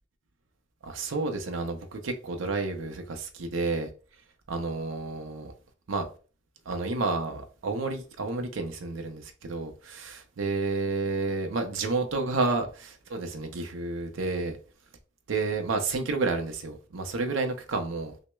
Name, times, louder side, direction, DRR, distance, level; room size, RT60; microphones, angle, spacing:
voice 1, 0.8-3.9 4.5-5.5 5.9-6.1 6.7-14.6 15.3-18.1, right 3 dB, 75° right, 0.5 m, -30 dB
5.8 x 2.1 x 2.2 m
head